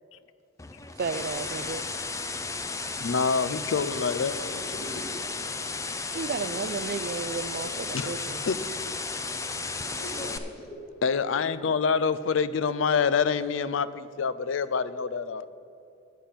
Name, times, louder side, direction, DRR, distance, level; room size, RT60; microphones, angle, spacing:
sound 1, 0.6-10.4, left 4 dB, 15° left, 0.5 m, -34 dB
voice 1, 1.0-1.8 6.1-8.5, right 5 dB, 50° right, 0.4 m, -33 dB
voice 2, 3.0-4.3 7.9-8.1 8.5-8.6 11.0-15.5, left 5 dB, 80° left, 0.4 m, -26 dB
voice 3, 3.9-5.2 10.0-10.8, left 1 dB, 50° left, 1.5 m, -41 dB
9.3 x 8.5 x 5.8 m
head